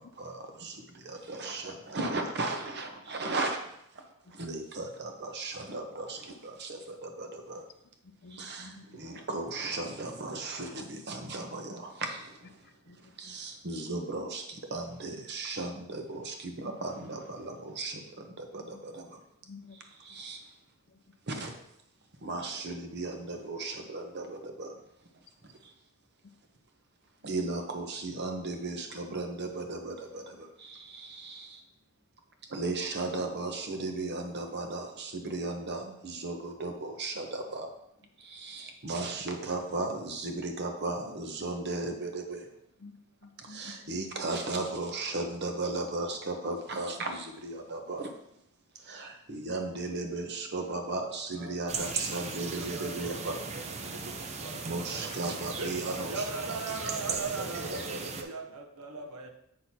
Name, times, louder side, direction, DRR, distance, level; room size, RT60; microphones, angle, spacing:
voice 1, 0.0-3.6 4.3-7.6 8.3-12.5 13.2-19.2 20.0-20.4 21.3-21.5 22.2-24.7 25.4-25.7 27.2-31.6 32.5-37.7 38.2-42.5 43.4-48.1 48.8-53.4 54.6-56.1 57.1-57.2 57.6-58.3, right 2 dB, 50° right, 4 dB, 0.9 m, -36 dB
voice 2, 8.0-9.2 12.6-13.3 18.7-18.8 19.4-20.2 20.9-21.0 42.8-43.9 54.0-54.1, left 3 dB, 45° left, 8 dB, 0.5 m, -52 dB
sound 1, 51.7-58.2, right 4 dB, 30° right, 0.5 m, -37 dB
voice 3, 52.3-55.2 55.6-59.3, right 3 dB, 70° right, 5 dB, 0.8 m, -40 dB
7.6 x 6.2 x 2.8 m, 0.80 s
head